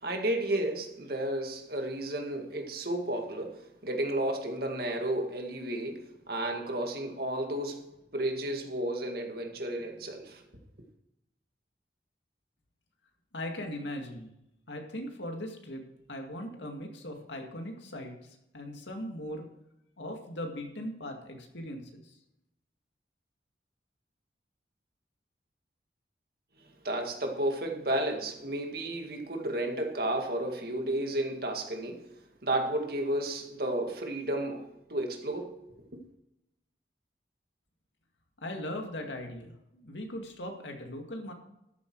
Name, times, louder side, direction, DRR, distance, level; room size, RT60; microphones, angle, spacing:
voice 1, 0.0-7.8 8.1-10.4 26.8-32.1 32.4-35.6, right 1 dB, 55° right, 2.1 m, -32 dB
voice 2, 13.3-14.3 14.7-15.8 16.1-19.5 20.0-21.8 38.4-41.3, left 1 dB, 85° left, 2.1 m, -39 dB
13.5 x 7.9 x 4.7 m
head